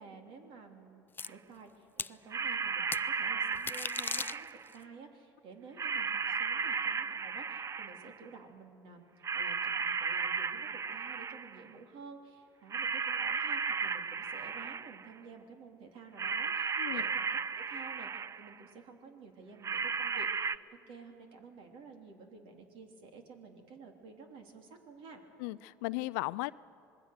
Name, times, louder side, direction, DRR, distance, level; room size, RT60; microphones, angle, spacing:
voice 1, 0.0-4.5 4.7-9.0 9.3-17.3 17.5-20.6 20.9-25.2, right 4 dB, 65° right, 4 dB, 3.1 m, -52 dB
sound 1, 1.2-1.3 2.0-2.1 2.9-3.0 3.5-4.8, left 5 dB, 20° left, 0.4 m, -37 dB
sound 2, 1.3-1.4 2.3-4.7 5.8-8.2 9.2-11.7 12.7-15.1 16.2-18.6 19.6-20.6, right 5 dB, 30° right, 0.6 m, -34 dB
voice 2, 25.4-26.5, left 21 dB, 75° left, 19 dB, 0.5 m, -36 dB
26.0 x 20.0 x 6.6 m, 2.7 s
hypercardioid pair, 75°, 10 cm